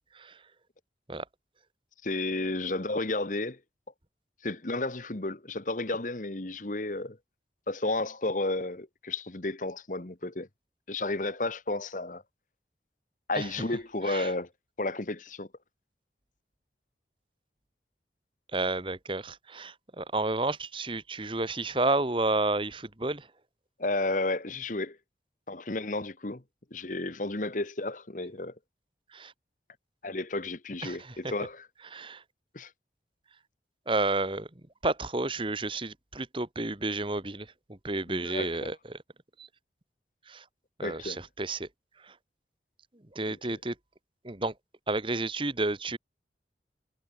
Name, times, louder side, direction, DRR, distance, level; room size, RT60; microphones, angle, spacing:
voice 1, 2.0-3.6 4.4-7.2 7.7-10.5 10.9-12.2 13.3-14.5 14.8-15.5 23.8-25.0 25.5-26.4 26.7-28.5 30.0-31.7 32.5-32.7 38.1-38.7 40.8-41.2 43.3-43.6, left 2 dB, 45° left, 1.4 m, -32 dB
voice 2, 18.5-23.3 29.1-29.3 30.8-31.1 31.9-32.2 33.9-34.5 34.8-39.0 39.4-39.5 40.3-40.4 40.8-41.7 42.0-42.1 43.1-43.7 44.2-44.5 44.9-46.0, right 2 dB, 30° right, 1.6 m, -31 dB
head